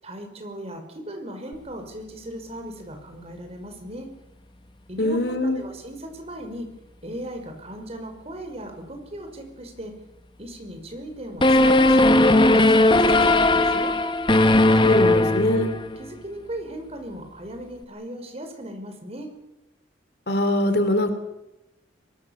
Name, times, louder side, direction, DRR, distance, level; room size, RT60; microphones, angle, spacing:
voice 1, 0.0-4.1 4.9-6.7 7.0-9.9 10.4-14.0 15.0-15.2 15.6-15.7 16.0-19.3, right 1 dB, 35° right, 5 dB, 5.4 m, -37 dB
voice 2, 5.0-5.6 14.8-15.7 20.3-21.1, left 1 dB, 65° left, 9 dB, 3.2 m, -22 dB
sound 1, 11.4-16.1, left 2 dB, 30° left, 1.4 m, -17 dB
24.0 x 22.5 x 7.2 m, 0.94 s
head